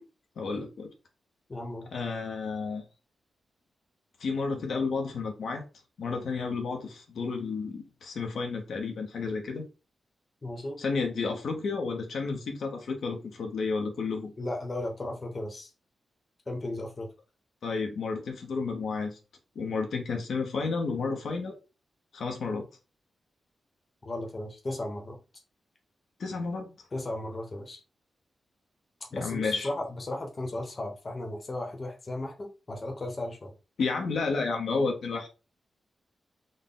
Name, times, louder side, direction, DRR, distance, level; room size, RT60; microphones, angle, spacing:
voice 1, 0.4-0.9 1.9-2.8 4.2-5.6 6.0-9.6 10.8-14.3 17.6-19.2 19.6-21.6 22.1-22.6 26.2-26.7 29.1-29.7 33.8-35.3, left 4 dB, 70° left, 0.7 m, -31 dB
voice 2, 1.5-1.9 10.4-10.8 14.4-15.7 16.5-17.1 24.0-25.2 26.9-27.8 29.1-33.5, left 1 dB, 30° left, 0.9 m, -35 dB
3.8 x 2.1 x 3.8 m
wide cardioid pair, 155°, 0 cm